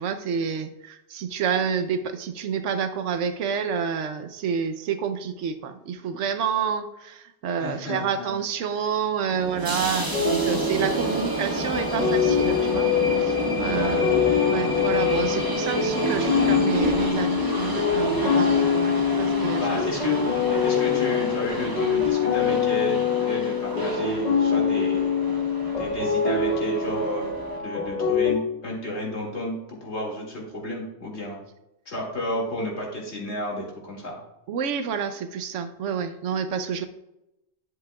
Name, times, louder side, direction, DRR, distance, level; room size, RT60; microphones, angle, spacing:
voice 1, 0.0-12.9 13.2-14.1 14.4-19.8 20.1-20.2 34.5-36.8, right 7 dB, 85° right, 9 dB, 1.0 m, -29 dB
voice 2, 7.6-8.3 13.5-14.2 19.6-25.1 25.8-27.3 27.6-31.4 31.9-34.2, left 1 dB, 65° left, -2 dB, 2.5 m, -32 dB
sound 1, 9.3-27.6, right 1 dB, 20° right, 1.0 m, -30 dB
sound 2, 10.1-28.3, left 6 dB, 35° left, 1.5 m, -24 dB
10.5 x 7.7 x 2.3 m, 0.90 s
omnidirectional pair, 1.2 m